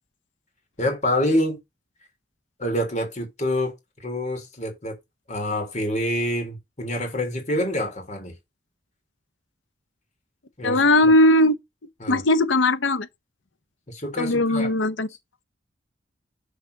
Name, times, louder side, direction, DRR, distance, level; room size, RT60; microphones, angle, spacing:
voice 1, 0.8-1.6 2.6-4.9 5.3-8.3 10.6-10.8 12.0-12.2 13.9-14.7, left 1 dB, 40° left, 3.4 m, -26 dB
voice 2, 10.6-11.6 12.1-13.1 14.2-15.1, left 1 dB, 90° left, 0.9 m, -18 dB
6.8 x 5.1 x 4.0 m
head